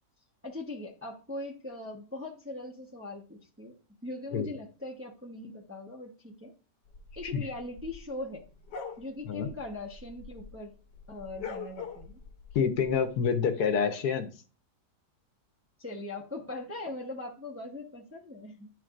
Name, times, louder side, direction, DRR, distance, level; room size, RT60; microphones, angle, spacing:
voice 1, 0.4-3.7 4.0-6.5 7.1-8.4 9.0-10.7 11.1-12.2 13.7-13.9 15.8-18.7, left 2 dB, 10° right, -1 dB, 0.7 m, -40 dB
sound 1, 6.9-10.6 10.9-12.9, left 5 dB, 85° left, 1.6 m, -43 dB
voice 2, 12.5-14.3, left 6 dB, 70° left, 8 dB, 1.3 m, -27 dB
11.0 x 4.5 x 2.5 m, 0.35 s
omnidirectional pair, 1.8 m